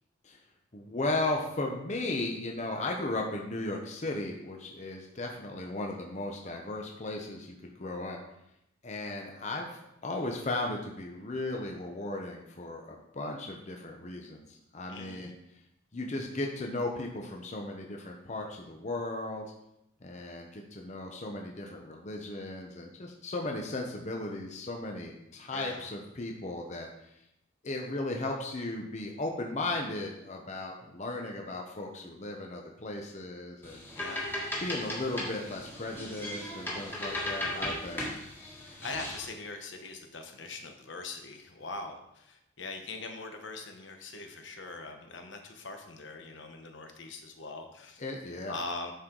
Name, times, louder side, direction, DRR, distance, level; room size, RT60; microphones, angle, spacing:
voice 1, 0.7-8.2 8.8-9.7 10.0-15.3 15.9-19.5 20.0-26.9 27.6-33.8 34.6-38.0 48.0-48.5, left 2 dB, 35° left, 1 dB, 0.8 m, -36 dB
voice 2, 14.9-15.3 25.5-25.9 34.0-34.3 37.1-37.8 38.8-48.0 48.5-48.9, left 3 dB, 65° left, 4 dB, 1.0 m, -42 dB
sound 1, 33.6-39.3, left 1 dB, 10° left, 1.5 m, -37 dB
10.0 x 4.6 x 3.9 m, 0.81 s
head